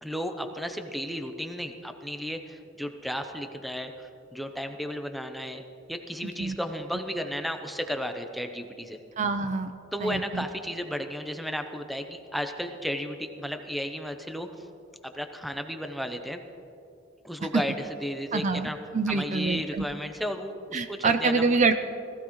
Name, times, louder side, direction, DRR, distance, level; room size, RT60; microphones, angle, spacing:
voice 1, 0.0-5.6 5.9-9.0 9.9-14.5 15.1-16.4 17.2-18.8 19.1-21.6, equal, ahead, 6 dB, 0.7 m, -34 dB
voice 2, 6.2-6.6 9.2-9.7 10.0-10.5 18.3-18.7 18.9-19.9 20.7-21.7, right 4 dB, 40° right, 9 dB, 0.5 m, -26 dB
18.5 x 15.5 x 3.1 m, 2.6 s
head